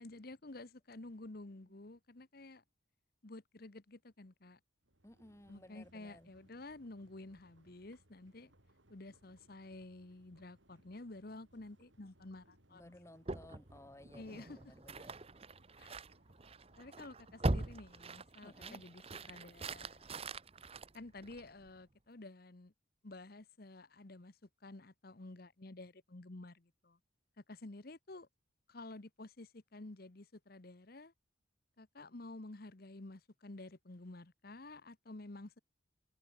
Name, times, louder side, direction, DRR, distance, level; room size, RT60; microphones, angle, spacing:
voice 1, 0.0-2.6 3.2-4.6 5.5-8.5 8.9-13.0 14.1-14.7 15.8-16.0 16.8-20.1 20.9-22.7 23.0-27.0 27.4-28.3 28.7-31.1 31.8-35.6, left 2 dB, 50° left, 1.1 m, -51 dB
sound 1, 4.8-18.2, right 1 dB, 70° right, 6.1 m, -69 dB
voice 2, 5.0-6.3 12.7-15.1 18.4-18.8, left 1 dB, 15° left, 1.2 m, -58 dB
sound 2, 13.3-21.7, right 2 dB, 30° right, 0.9 m, -42 dB
head